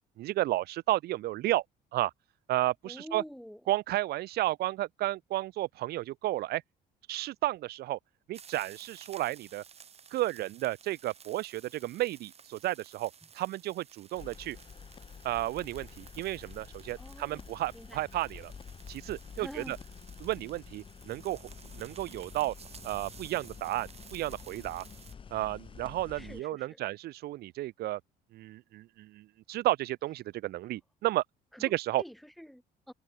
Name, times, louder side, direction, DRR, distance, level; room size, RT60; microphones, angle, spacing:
voice 1, 0.2-1.6 1.9-2.1 2.5-3.2 3.7-6.6 7.1-8.0 8.3-9.6 10.1-14.6 15.2-18.5 18.9-19.8 20.2-22.5 22.8-24.8 25.3-28.0 28.3-31.2 31.6-32.0, right 16 dB, 70° right, 0.7 m, -32 dB
voice 2, 2.8-3.6 17.0-17.5 17.7-18.0 19.4-19.8 26.1-26.8 31.5-31.6 32.0-32.9, equal, ahead, 2.0 m, -47 dB
sound 1, 8.3-25.1, right 7 dB, 40° right, 1.7 m, -55 dB
sound 2, 14.1-26.4, left 6 dB, 30° left, 1.1 m, -49 dB
cardioid pair, 110°, 17 cm